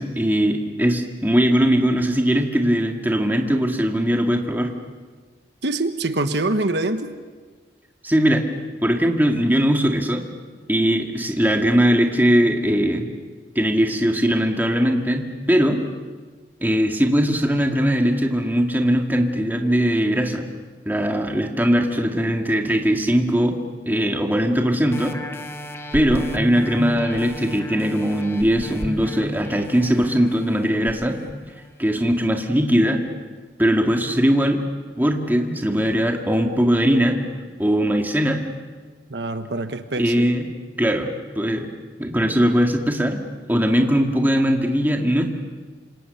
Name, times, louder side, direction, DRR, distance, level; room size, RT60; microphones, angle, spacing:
voice 1, 0.0-4.7 8.0-8.4 8.8-10.3 10.7-13.1 13.6-15.8 16.6-20.5 20.9-23.6 23.9-25.2 25.9-31.2 31.8-33.0 33.6-34.6 35.0-37.2 37.6-38.4 40.0-40.4 40.8-41.7 42.0-43.2 43.5-45.3, equal, 10° right, 3 dB, 2.0 m, -20 dB
voice 2, 5.6-7.1 39.1-40.3, right 2 dB, 75° right, 9 dB, 1.3 m, -24 dB
sound 1, 24.9-32.1 32.6-32.7, equal, 15° left, 1.3 m, -33 dB
27.5 x 27.0 x 6.8 m, 1.4 s
head